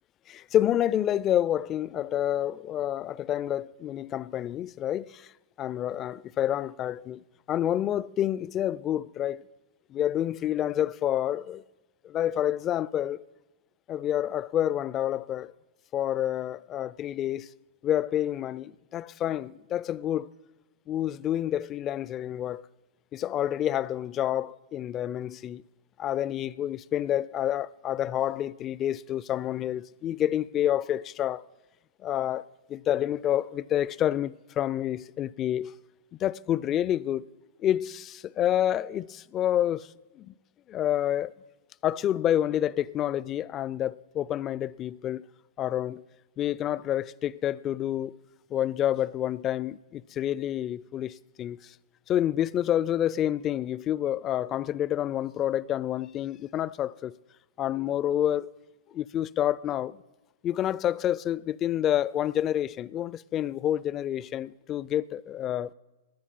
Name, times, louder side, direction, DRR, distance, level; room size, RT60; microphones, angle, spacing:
voice 1, 0.3-5.3 5.6-9.5 9.9-11.6 12.0-13.2 13.9-15.5 15.9-17.5 17.8-20.3 20.9-22.6 23.1-25.6 26.0-31.4 32.0-32.4 32.7-35.7 36.2-37.3 37.6-39.9 40.1-40.3 40.7-41.3 41.8-45.3 45.6-46.0 46.4-48.2 48.5-51.7 52.1-57.2 57.6-58.5 58.9-60.0 60.4-65.7, left 11 dB, 30° left, 0.4 m, -28 dB
19.5 x 10.0 x 5.4 m
hypercardioid pair, 105°, 0 cm